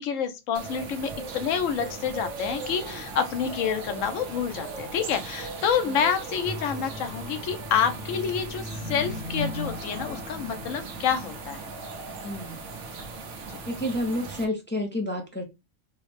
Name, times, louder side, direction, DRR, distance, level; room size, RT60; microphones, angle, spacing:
voice 1, 0.0-11.7 13.5-13.6, left 7 dB, 75° left, 1.0 m, -28 dB
sound 1, 0.5-14.4, right 4 dB, 70° right, 1.1 m, -38 dB
sound 2, 6.4-11.7 12.2-12.4, left 1 dB, 40° left, 1.1 m, -37 dB
voice 2, 12.2-12.6 13.7-15.4, left 1 dB, 20° left, 0.3 m, -30 dB
3.9 x 2.0 x 3.2 m
omnidirectional pair, 1.3 m